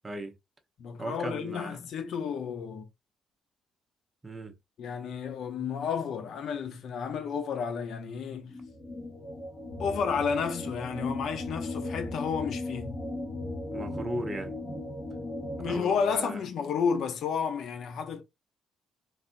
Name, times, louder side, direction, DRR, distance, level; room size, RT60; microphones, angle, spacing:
voice 1, 0.0-0.3 1.0-1.8 4.2-4.6 13.7-14.6 15.7-16.4, right 1 dB, 25° right, 0.8 m, -37 dB
voice 2, 0.8-2.9 4.8-8.5 9.8-13.0 15.6-18.2, left 6 dB, 70° left, 0.7 m, -31 dB
sound 1, 8.4-15.8, left 2 dB, 20° left, 1.5 m, -37 dB
3.4 x 2.6 x 2.5 m
cardioid pair, 90°, 0 cm